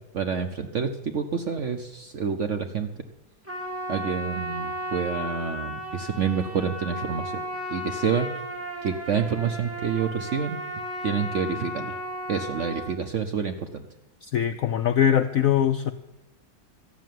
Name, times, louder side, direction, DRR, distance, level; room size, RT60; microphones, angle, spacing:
voice 1, 0.1-2.9 3.9-7.3 7.7-8.3 8.8-10.6 11.0-11.9 12.3-13.8, right 6 dB, 60° right, 6 dB, 0.8 m, -28 dB
Trumpet, 3.4-12.9, equal, 5° right, 2.2 m, -34 dB
voice 2, 14.2-15.9, left 9 dB, 75° left, 9 dB, 0.8 m, -22 dB
13.5 x 7.4 x 9.2 m, 0.94 s
omnidirectional pair, 2.0 m